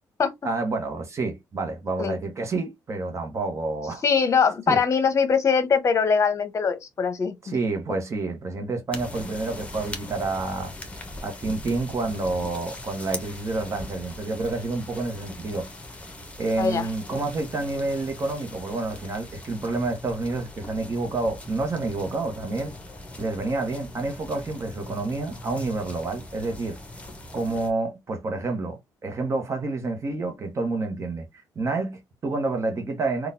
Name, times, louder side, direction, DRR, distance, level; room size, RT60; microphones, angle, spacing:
voice 1, 0.4-4.0 4.7-4.8 7.4-10.7 11.2-15.7 16.4-22.7 23.2-26.8 27.3-33.3, right 3 dB, 40° right, 0.9 m, -29 dB
voice 2, 4.0-7.3 16.6-16.9, left 6 dB, 40° left, 0.9 m, -22 dB
sound 1, 8.9-27.7, left 1 dB, 15° left, 1.0 m, -40 dB
3.8 x 2.3 x 2.6 m
cardioid pair, 105°, 8 cm